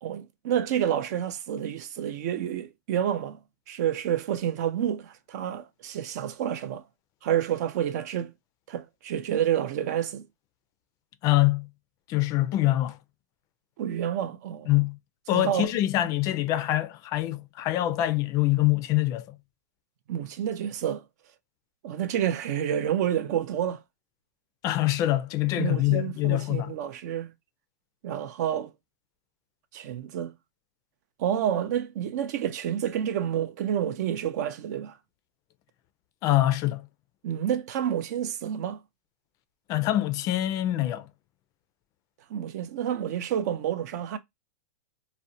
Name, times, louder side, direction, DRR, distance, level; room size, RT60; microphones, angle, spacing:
voice 1, 0.0-3.4 3.7-6.8 7.2-8.3 8.7-10.2 13.8-14.7 15.3-15.7 20.1-21.0 21.8-23.8 25.6-27.3 28.0-28.7 29.7-30.3 31.2-35.0 37.2-38.8 42.3-44.2, right 10 dB, 65° right, 0.5 m, -29 dB
voice 2, 11.2-11.7 12.1-13.0 14.7-15.0 15.3-19.4 24.6-26.7 36.2-36.9 39.7-41.1, left 15 dB, 35° left, 0.3 m, -24 dB
2.5 x 2.1 x 2.6 m
hypercardioid pair, 125°, 10 cm